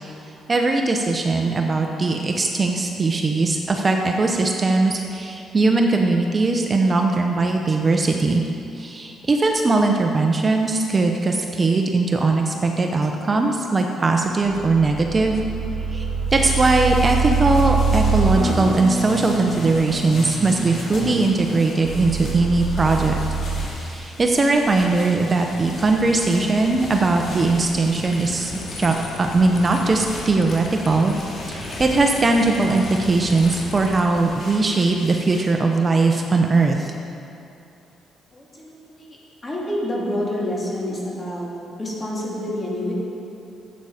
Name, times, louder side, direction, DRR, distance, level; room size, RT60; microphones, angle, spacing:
voice 1, 0.5-8.4 8.7-15.4 15.9-16.0 16.3-23.2 23.8-28.5 28.8-31.1 31.5-36.9, right 3 dB, 30° right, 2 dB, 0.8 m, -20 dB
sound 1, 14.2-23.7, right 3 dB, 85° right, 1.7 m, -25 dB
sound 2, 16.1-35.7, left 1 dB, 55° left, 2.8 m, -39 dB
sound 3, 25.5-34.0, left 2 dB, 80° left, 1.4 m, -37 dB
voice 2, 38.3-39.2 39.4-41.5 41.8-42.9, left 1 dB, 25° left, -4 dB, 2.9 m, -28 dB
12.0 x 8.4 x 5.0 m, 2.7 s
cardioid pair, 90°, 0 cm